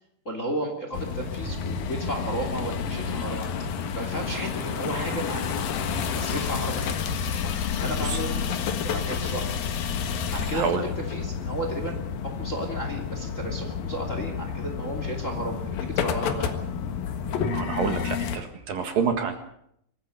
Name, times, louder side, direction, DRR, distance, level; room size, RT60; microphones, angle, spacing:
voice 1, 0.2-3.7 3.9-7.0 7.4-8.5 8.8-9.5 10.3-11.9 12.4-16.5, right 1 dB, 20° left, 4 dB, 2.7 m, -33 dB
sound 1, 0.9-18.4, left 7 dB, 65° left, 3.0 m, -30 dB
sound 2, 1.4-15.7, right 1 dB, 35° right, 3.8 m, -45 dB
voice 2, 10.5-10.8 17.5-19.4, right 6 dB, 60° right, 6 dB, 3.2 m, -27 dB
25.0 x 15.0 x 8.5 m, 0.73 s
omnidirectional pair, 5.0 m